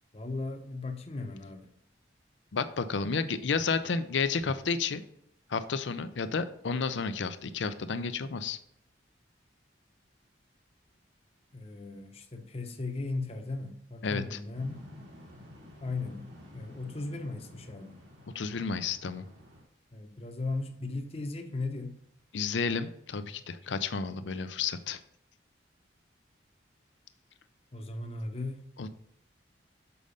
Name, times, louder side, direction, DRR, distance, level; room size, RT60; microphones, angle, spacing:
voice 1, 0.1-1.7 11.5-14.9 15.8-18.0 19.9-22.0 27.7-28.9, left 3 dB, 35° left, 5 dB, 0.8 m, -37 dB
voice 2, 2.5-5.0 5.5-8.6 14.0-14.4 18.3-19.2 22.3-25.0 28.8-28.9, left 5 dB, 75° left, 12 dB, 0.5 m, -31 dB
sound 1, 14.5-19.6, left 1 dB, 75° right, 2.7 m, -52 dB
6.9 x 5.3 x 5.1 m, 0.72 s
head